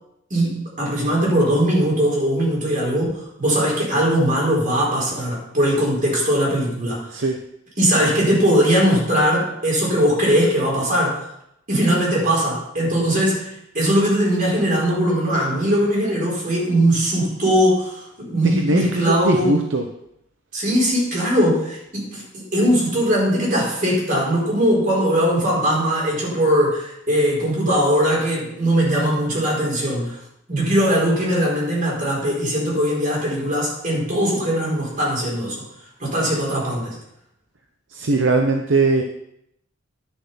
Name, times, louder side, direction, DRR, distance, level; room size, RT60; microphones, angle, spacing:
voice 1, 0.3-7.2 7.8-11.2 11.7-19.6 20.5-30.2 30.5-35.6 36.0-37.0, equal, 45° right, -3 dB, 4.5 m, -20 dB
voice 2, 18.4-19.8 37.9-39.0, right 3 dB, 70° right, 4 dB, 0.8 m, -20 dB
11.0 x 6.9 x 5.6 m, 0.78 s
head